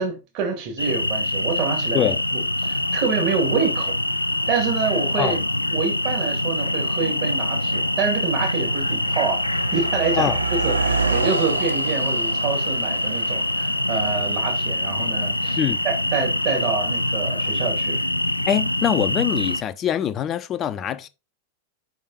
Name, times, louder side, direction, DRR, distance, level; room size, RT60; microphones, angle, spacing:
voice 1, 0.0-4.0 4.5-5.4 5.7-15.6 15.8-18.0, right 5 dB, 45° right, 2.1 m, -27 dB
sound 1, 0.8-19.6, left 1 dB, 85° left, 0.4 m, -24 dB
Car passing by, 5.9-6.0 6.8-7.0 7.3-17.7, right 4 dB, 75° right, 0.7 m, -31 dB
voice 2, 18.5-21.1, left 10 dB, 30° left, 0.6 m, -23 dB
5.4 x 5.3 x 4.0 m
figure-of-eight pair, 90°, 0 cm